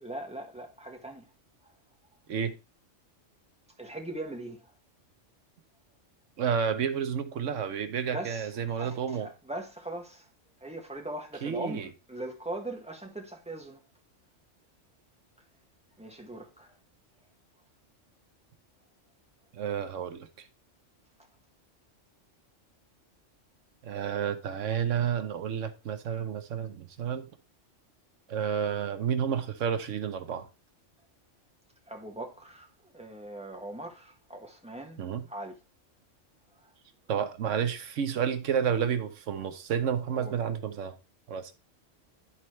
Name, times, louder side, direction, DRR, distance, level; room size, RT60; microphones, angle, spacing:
voice 1, 0.0-1.3 1.6-1.7 3.8-4.7 8.1-10.3 10.6-13.8 16.0-16.8 31.9-35.6 36.5-36.7 40.1-40.3, right 1 dB, 5° right, 1.5 m, -40 dB
voice 2, 6.4-9.3 11.4-11.9 19.5-20.5 23.8-27.3 28.3-30.5 35.0-35.2 37.1-40.9 41.3-41.5, right 8 dB, 85° right, 1.2 m, -30 dB
11.5 x 4.3 x 3.2 m
omnidirectional pair, 1.3 m